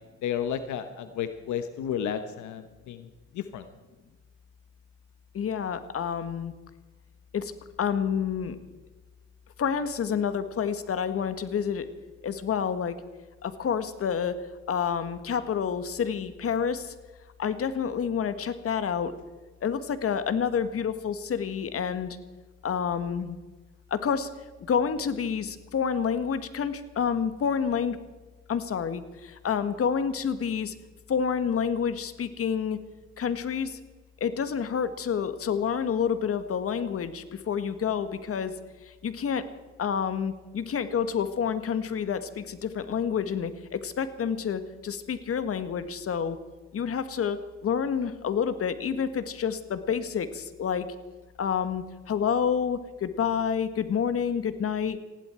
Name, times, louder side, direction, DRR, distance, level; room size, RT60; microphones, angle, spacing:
voice 1, 0.2-3.1 3.3-3.7, left 9 dB, 80° left, 9 dB, 1.1 m, -32 dB
voice 2, 5.3-6.5 7.3-7.5 7.8-8.6 9.6-11.9 12.2-13.0 13.4-14.4 14.7-16.9 17.4-19.1 19.6-22.2 22.6-23.4 23.9-24.3 24.7-28.0 28.5-30.7 31.1-32.8 33.2-33.8 34.2-38.5 38.8-39.5 39.8-46.4 46.7-50.9 51.4-55.0, left 7 dB, 50° left, 11 dB, 1.6 m, -28 dB
20.0 x 16.0 x 4.5 m, 1.2 s
cardioid pair, 90°, 29 cm